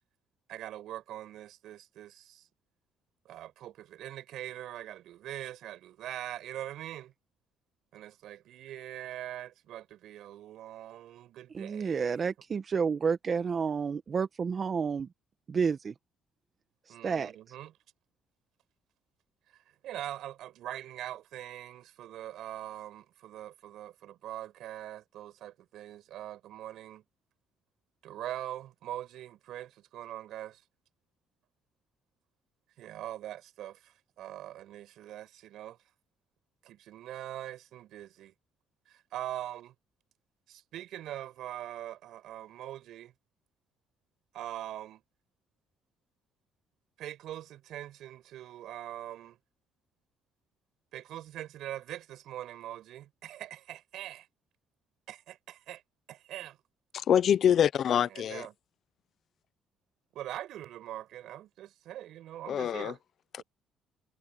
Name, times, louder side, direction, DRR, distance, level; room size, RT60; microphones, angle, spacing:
voice 1, 0.5-2.4 3.3-7.1 7.9-12.3 16.9-17.7 19.8-27.0 28.0-30.6 32.8-35.8 36.6-38.3 38.9-39.7 40.5-43.1 44.3-45.0 47.0-49.4 50.9-54.3 55.1-55.8 56.1-56.6 58.0-58.5 60.1-63.0 63.4-63.5, right 12 dB, 75° right, 5.4 m, -42 dB
voice 2, 11.5-15.1 15.5-15.9 16.9-17.3, right 6 dB, 45° right, 1.5 m, -30 dB
voice 3, 56.9-58.5 62.5-62.9, left 9 dB, 60° left, 0.8 m, -25 dB
supercardioid pair, 75°, 0 cm